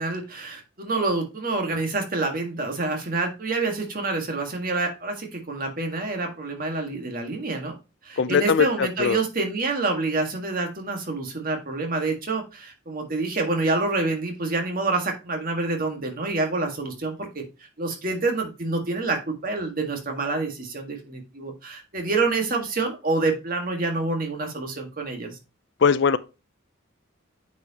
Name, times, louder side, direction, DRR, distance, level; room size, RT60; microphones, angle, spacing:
voice 1, 0.0-7.8 8.0-17.4 17.8-25.3, right 3 dB, 45° right, 1.7 m, -27 dB
voice 2, 8.2-9.2 25.8-26.2, left 6 dB, 55° left, 0.4 m, -20 dB
9.1 x 4.5 x 2.9 m
head